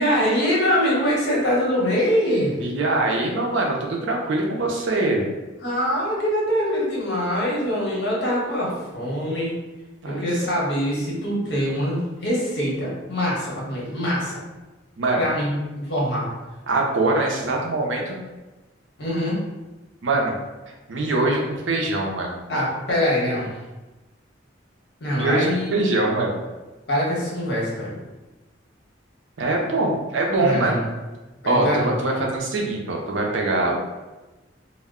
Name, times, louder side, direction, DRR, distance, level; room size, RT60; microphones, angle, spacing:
voice 1, 0.0-2.6 5.6-9.6 10.1-14.4 15.2-16.3 19.0-19.4 22.5-23.5 25.0-25.9 26.9-28.0 30.4-30.8 31.4-31.9, equal, 60° left, -5 dB, 0.9 m, -23 dB
voice 2, 2.6-5.3 10.0-10.3 15.0-15.3 16.7-18.2 20.0-20.4 20.7-22.4 25.2-26.4 29.4-30.8 31.4-33.7, right 2 dB, 80° right, 0 dB, 0.5 m, -23 dB
2.1 x 2.1 x 3.5 m, 1.1 s
head